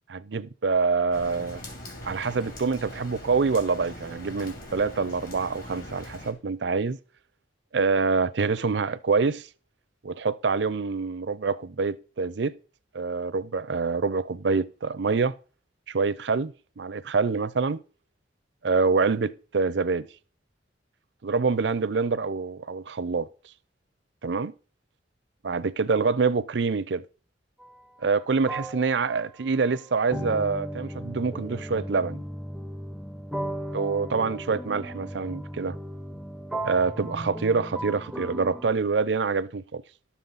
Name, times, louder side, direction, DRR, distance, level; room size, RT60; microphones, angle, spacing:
voice 1, 0.1-1.6 2.0-7.0 7.7-9.5 10.0-12.6 12.9-15.3 15.9-17.8 18.6-20.1 21.2-23.3 24.2-24.5 25.4-27.0 28.0-32.2 33.7-35.8 36.6-39.8, right 4 dB, 75° right, 0.6 m, -26 dB
Rain, 1.1-6.3, left 1 dB, 50° left, 2.6 m, -42 dB
sound 1, 27.6-27.8 28.5-38.7, right 1 dB, ahead, 0.5 m, -36 dB
12.0 x 7.2 x 3.9 m
head